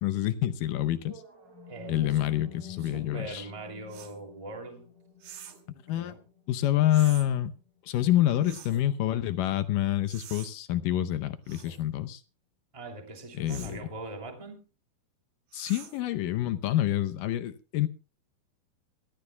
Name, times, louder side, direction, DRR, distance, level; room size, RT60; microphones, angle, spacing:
voice 1, 0.0-1.2 1.9-3.5 5.9-6.1 6.5-7.5 7.9-12.2 13.4-13.8 15.5-17.9, left 13 dB, 75° left, 2.2 m, -27 dB
sound 1, 1.0-9.0, left 6 dB, 30° right, 3.3 m, -50 dB
voice 2, 1.7-2.3 2.8-4.9 5.9-6.2 12.7-14.6, right 2 dB, 10° right, 2.0 m, -42 dB
sound 2, 3.9-4.2 5.2-5.7 6.9-7.3 8.4-8.8 10.1-10.5 11.5-11.8 13.5-13.8 15.5-16.1, right 9 dB, 60° right, 2.5 m, -46 dB
25.5 x 13.5 x 2.3 m
omnidirectional pair, 4.4 m